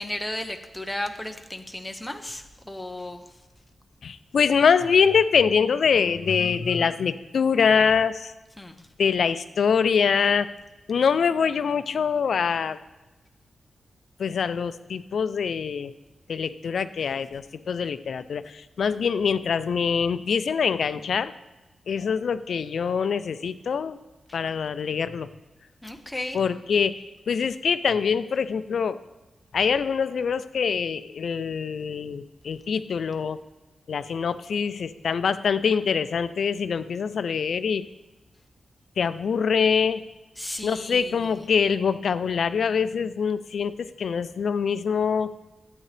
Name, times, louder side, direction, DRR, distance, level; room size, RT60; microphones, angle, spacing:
voice 1, 0.0-3.2 8.6-8.9 25.8-26.4 40.4-41.3, left 1 dB, 5° left, 5 dB, 0.7 m, -34 dB
voice 2, 4.0-8.3 9.0-10.5 10.9-12.8 14.2-15.9 16.3-21.3 21.9-24.0 24.3-25.3 26.3-29.0 29.5-33.4 33.9-37.9 39.0-40.0 40.6-45.3, left 6 dB, 65° left, 13 dB, 0.4 m, -24 dB
11.5 x 8.5 x 3.3 m, 1.1 s
wide cardioid pair, 160°, 0 cm